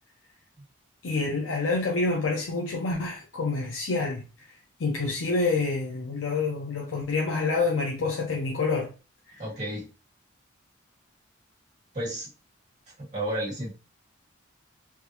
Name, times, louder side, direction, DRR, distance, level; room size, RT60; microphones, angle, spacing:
voice 1, 1.0-4.5 4.8-8.9 9.3-9.4, left 3 dB, 75° left, 0.6 m, -27 dB
voice 2, 9.4-9.9 11.9-12.3 13.0-13.7, right 1 dB, 35° right, 1.7 m, -32 dB
3.4 x 2.4 x 2.8 m
head